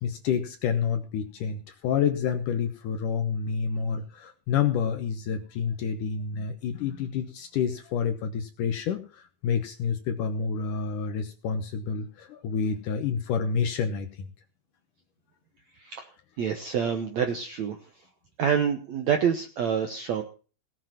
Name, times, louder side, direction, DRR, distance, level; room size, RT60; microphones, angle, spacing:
voice 1, 0.0-14.1, left 7 dB, 70° left, 7 dB, 2.0 m, -28 dB
voice 2, 15.8-16.1 16.4-17.8 18.4-20.2, right 7 dB, 75° right, 6 dB, 1.6 m, -27 dB
17.5 x 7.6 x 5.8 m, 0.38 s
omnidirectional pair, 4.9 m